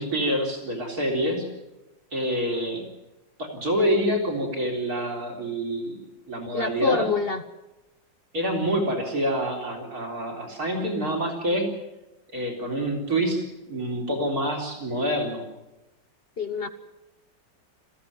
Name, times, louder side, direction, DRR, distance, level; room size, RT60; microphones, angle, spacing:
voice 1, 0.0-1.5 2.1-2.8 3.4-6.0 6.3-7.1 8.3-11.7 12.3-15.4, equal, 55° right, 2 dB, 4.3 m, -27 dB
voice 2, 6.5-7.4 16.4-16.7, left 4 dB, 45° left, 10 dB, 0.9 m, -25 dB
22.0 x 15.0 x 9.4 m, 0.99 s
omnidirectional pair, 2.0 m